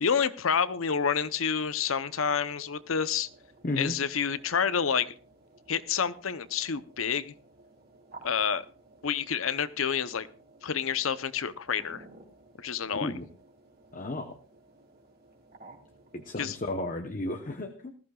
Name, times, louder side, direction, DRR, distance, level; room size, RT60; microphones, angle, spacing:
voice 1, 0.0-3.3 3.8-5.1 5.7-7.3 8.2-8.6 9.0-10.3 10.6-12.0 12.6-13.1 16.4-16.5, left 7 dB, 90° left, 15 dB, 0.7 m, -28 dB
sound 1, 0.6-16.8, right 2 dB, 50° right, 2.6 m, -56 dB
voice 2, 3.6-3.9 12.9-13.3 13.9-14.4 16.1-17.9, left 2 dB, 40° left, 6 dB, 0.9 m, -33 dB
19.5 x 14.0 x 2.3 m, 0.37 s
head